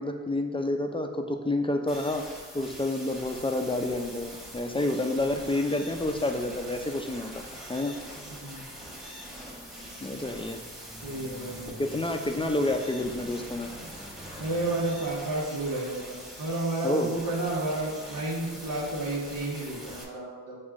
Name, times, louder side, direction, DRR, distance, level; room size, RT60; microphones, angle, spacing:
voice 1, 0.0-2.2 2.5-7.4 7.7-8.0 10.0-10.6 11.8-13.7 16.8-17.1, left 2 dB, 15° left, 5 dB, 0.4 m, -29 dB
sound 1, 1.9-20.0, equal, ahead, 1.2 m, -44 dB
sound 2, 3.3-15.0, right 1 dB, 30° right, 1.3 m, -49 dB
voice 2, 8.2-8.6 11.0-11.7 14.4-20.6, right 2 dB, 70° right, -7 dB, 1.2 m, -31 dB
6.3 x 2.4 x 3.5 m, 1.4 s
cardioid pair, 45°, 34 cm